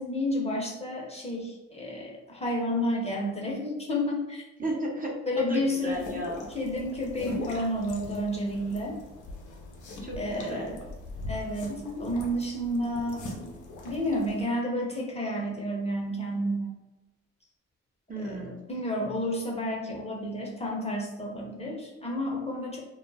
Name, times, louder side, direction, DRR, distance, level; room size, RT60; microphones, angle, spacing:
voice 1, 0.0-4.4 5.3-6.0 6.5-9.0 10.2-10.8 11.3-13.3 13.8-16.7 18.2-22.8, equal, 20° left, -2 dB, 0.8 m, -31 dB
voice 2, 4.6-6.5 10.0-10.7 18.1-18.5, right 1 dB, 30° right, -2 dB, 0.7 m, -34 dB
sound 1, 5.9-14.4, left 2 dB, 75° left, 0.6 m, -40 dB
2.3 x 2.0 x 3.2 m, 1.0 s
supercardioid pair, 55°, 30 cm